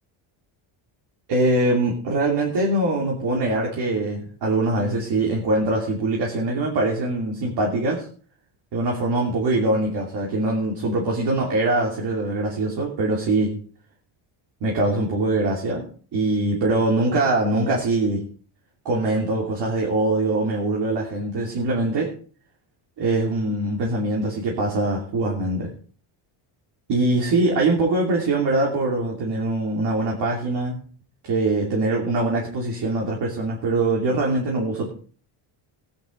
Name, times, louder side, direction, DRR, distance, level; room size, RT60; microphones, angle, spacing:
voice 1, 1.3-8.1 8.7-13.6 14.6-18.3 18.8-22.1 23.0-25.7 26.9-30.8 31.2-34.9, right 2 dB, 55° right, -2 dB, 2.9 m, -23 dB
17.0 x 10.0 x 3.9 m, 0.43 s
cardioid pair, 165°, 49 cm